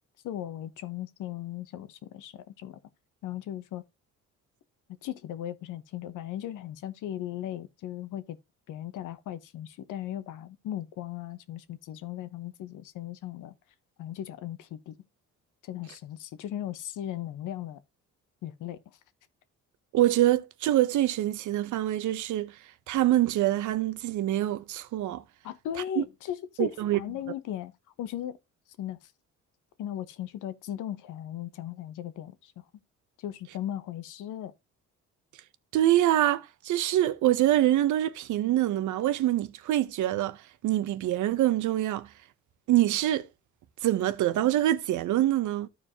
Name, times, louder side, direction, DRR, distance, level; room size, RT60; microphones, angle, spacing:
voice 1, 0.2-2.8 3.2-3.8 5.0-8.4 8.7-13.5 14.0-14.9 15.6-17.8 18.4-18.8 25.4-27.7 28.0-28.4 28.8-29.1 29.8-32.5 33.2-34.5, left 11 dB, 85° left, 0.9 m, -37 dB
voice 2, 19.9-22.5 22.9-25.2 26.0-26.1 26.6-27.0 35.7-40.4 40.6-42.1 42.7-43.3 43.8-45.7, right 13 dB, 80° right, 0.8 m, -25 dB
13.5 x 4.7 x 2.7 m
cardioid pair, 90°, 30 cm